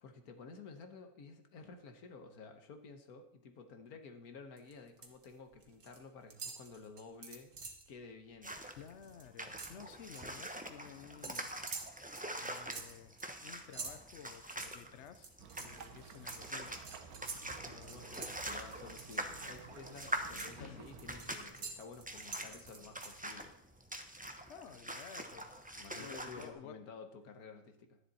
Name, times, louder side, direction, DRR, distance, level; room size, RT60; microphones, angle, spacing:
voice 1, 0.0-7.5 7.9-8.5 17.6-23.5 25.8-28.0, left 4 dB, 80° left, 7 dB, 1.7 m, -52 dB
sound 1, 4.6-5.2 5.5-6.0 6.3-7.9 8.3-8.5 8.8-10.4 11.2-19.4 19.9-23.4, right 4 dB, 60° right, 1.9 m, -48 dB
sound 2, 8.4-26.5, right 1 dB, 5° right, 0.7 m, -45 dB
voice 2, 8.8-11.5 12.4-15.3 15.6-16.8 17.7-18.2 20.6-20.8 24.5-25.5 25.9-26.8, left 8 dB, 60° left, 11 dB, 0.9 m, -53 dB
sound 3, 15.4-21.2, right 5 dB, 80° right, 1.4 m, -54 dB
12.5 x 10.5 x 4.2 m, 0.75 s
omnidirectional pair, 1.6 m